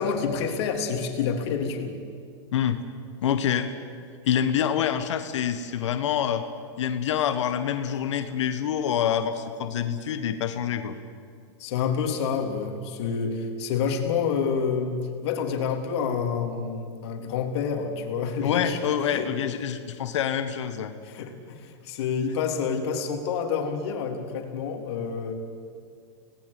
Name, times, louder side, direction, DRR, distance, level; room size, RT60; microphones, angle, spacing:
voice 1, 0.0-2.0 11.6-19.3 21.0-25.3, left 6 dB, 60° left, 4 dB, 3.4 m, -28 dB
voice 2, 3.2-3.7 4.3-6.4 6.8-11.0 18.4-20.9, left 9 dB, 80° left, 9 dB, 1.5 m, -26 dB
25.0 x 18.5 x 8.6 m, 2.2 s
hypercardioid pair, 125°, 15 cm